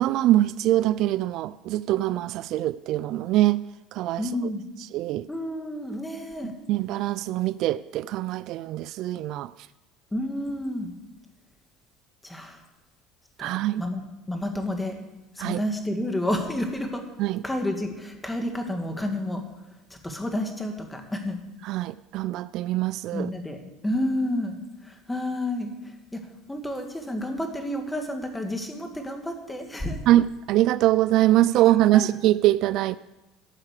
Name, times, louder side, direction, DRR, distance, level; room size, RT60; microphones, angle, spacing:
voice 1, 0.0-3.6 3.9-4.3 4.9-5.3 6.7-9.5 13.4-13.8 15.4-15.6 17.2-17.4 21.6-23.3 30.1-33.0, right 14 dB, 60° right, 0.3 m, -23 dB
voice 2, 4.2-4.6 5.3-6.5 10.1-10.9 12.2-12.6 13.4-13.5 13.8-14.0 14.3-14.9 15.4-17.0 17.4-19.4 20.0-21.4 23.1-23.6 23.8-24.6 24.8-25.7 26.1-26.2 26.5-30.1 31.9-32.1, left 1 dB, 10° left, 2.1 m, -30 dB
13.0 x 5.8 x 8.3 m
supercardioid pair, 100°, 0 cm